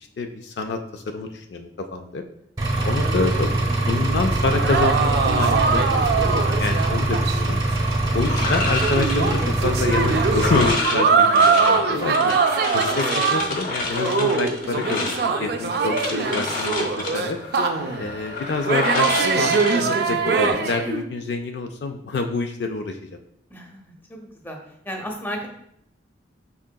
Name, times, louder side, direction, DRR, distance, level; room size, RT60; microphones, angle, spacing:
voice 1, 0.2-2.2 2.8-5.8 6.4-7.6 8.1-12.3 12.7-17.4 18.0-23.2, left 3 dB, 60° left, 5 dB, 0.3 m, -27 dB
Engine, 2.6-10.7, right 2 dB, 25° right, 0.7 m, -23 dB
sound 1, 2.8-7.5 7.8-7.9 8.4-13.6 13.9-18.1 18.7-21.0, right 4 dB, 55° right, 0.4 m, -23 dB
sound 2, 8.2-20.5, left 2 dB, 45° left, 0.7 m, -29 dB
voice 2, 23.5-24.6 24.8-25.5, equal, 10° left, 2 dB, 0.6 m, -35 dB
5.5 x 3.6 x 2.2 m, 0.74 s
head